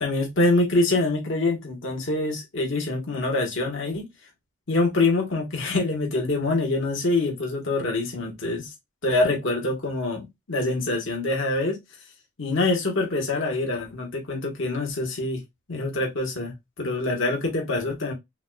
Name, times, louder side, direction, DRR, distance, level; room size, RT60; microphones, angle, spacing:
voice 1, 0.0-4.1 4.7-8.7 9.0-11.8 12.4-15.4 15.7-18.1, left 2 dB, 60° left, 1.4 m, -25 dB
5.7 x 2.4 x 2.3 m
head